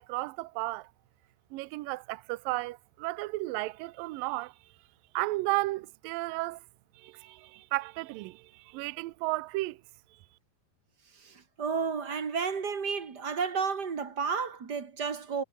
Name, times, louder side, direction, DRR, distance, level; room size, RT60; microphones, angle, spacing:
voice 1, 0.1-0.9 1.5-4.5 5.1-6.6 7.0-9.8, right 20 dB, 75° right, 2.2 m, -33 dB
voice 2, 11.1-15.4, right 5 dB, 35° right, 1.9 m, -32 dB
omnidirectional pair, 4.6 m